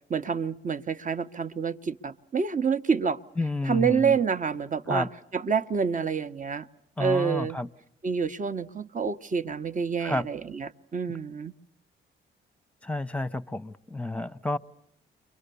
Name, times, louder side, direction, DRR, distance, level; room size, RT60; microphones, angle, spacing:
voice 1, 0.1-3.2 3.7-5.1 5.3-6.7 7.0-7.6 8.0-11.5, right 6 dB, 40° right, 1.0 m, -28 dB
voice 2, 3.4-4.2 4.9-5.1 7.0-7.7 10.0-10.3 12.8-14.6, left 2 dB, 5° left, 0.9 m, -30 dB
29.5 x 23.5 x 6.9 m
cardioid pair, 70°, 21 cm